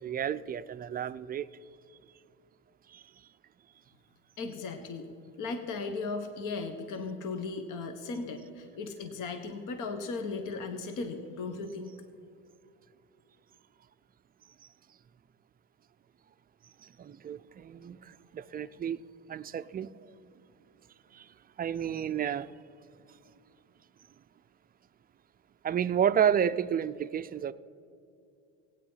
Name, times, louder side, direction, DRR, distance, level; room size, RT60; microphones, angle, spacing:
voice 1, 0.0-1.5 2.9-3.0 16.8-19.0 19.3-20.2 21.1-21.3 21.6-22.5 25.6-27.5, right 9 dB, 25° right, 0.4 m, -31 dB
voice 2, 4.4-5.1 5.4-11.9, left 4 dB, 60° left, 1.3 m, -37 dB
16.0 x 9.3 x 5.6 m
supercardioid pair, 95°, 36 cm